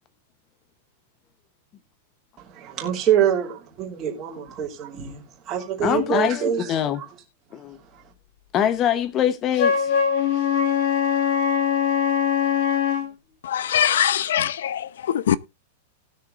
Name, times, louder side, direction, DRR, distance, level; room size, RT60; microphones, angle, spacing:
voice 1, 2.4-6.7, right 9 dB, 20° right, 2.8 m, -25 dB
voice 2, 5.8-7.0 7.5-7.8 8.5-9.9, left 10 dB, 20° left, 0.9 m, -23 dB
Wind instrument woodwind instrument, 9.5-13.1, left 7 dB, 40° left, 2.3 m, -21 dB
voice 3, 13.4-15.4, left 10 dB, 75° left, 0.8 m, -22 dB
19.0 x 6.7 x 2.5 m
supercardioid pair, 175°, 0 cm